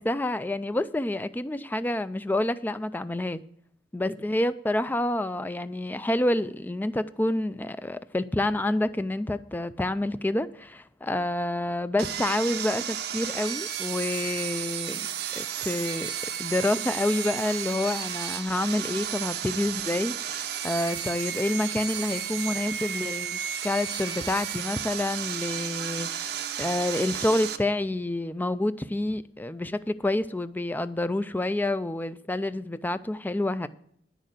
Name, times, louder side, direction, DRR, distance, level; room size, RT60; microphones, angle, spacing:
voice 1, 0.0-3.4 3.9-15.1 15.3-16.1 16.4-33.7, left 1 dB, 10° left, 0.3 m, -28 dB
Sawing, 12.0-27.6, right 9 dB, 65° right, 0.7 m, -33 dB
9.3 x 6.6 x 7.6 m
head